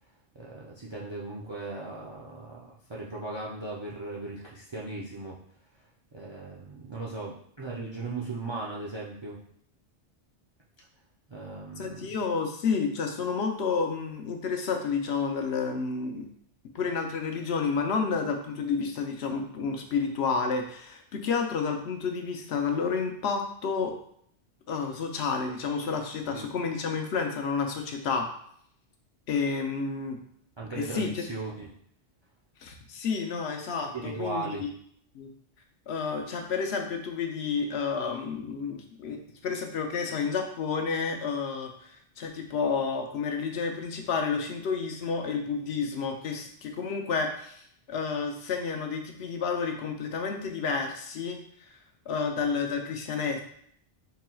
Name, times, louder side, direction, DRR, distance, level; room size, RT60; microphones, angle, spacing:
voice 1, 0.3-5.4 6.1-9.4 11.3-12.1 26.3-26.4 30.6-31.7 33.9-34.7, right 3 dB, 50° right, -3 dB, 0.3 m, -37 dB
voice 2, 11.8-16.3 16.7-23.9 24.7-28.3 29.3-30.2 30.7-31.2 32.6-34.7 35.1-35.3 35.9-51.4 52.1-53.4, left 5 dB, 70° left, 4 dB, 0.8 m, -30 dB
4.3 x 3.8 x 2.3 m, 0.66 s
omnidirectional pair, 1.2 m